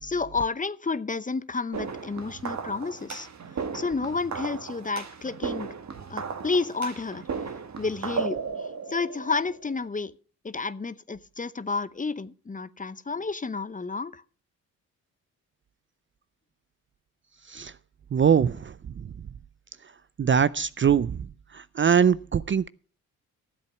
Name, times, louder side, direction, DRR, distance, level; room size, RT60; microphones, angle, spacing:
voice 1, 0.0-3.3 3.7-5.7 6.1-7.5 7.8-10.1 10.4-14.2, left 4 dB, 20° left, 0.8 m, -31 dB
sound 1, 1.7-9.9, right 5 dB, 50° right, 1.7 m, -35 dB
voice 2, 18.1-18.7 20.2-21.1 21.5-22.7, right 7 dB, 35° right, 0.5 m, -22 dB
12.5 x 8.0 x 5.8 m
supercardioid pair, 50°, 36 cm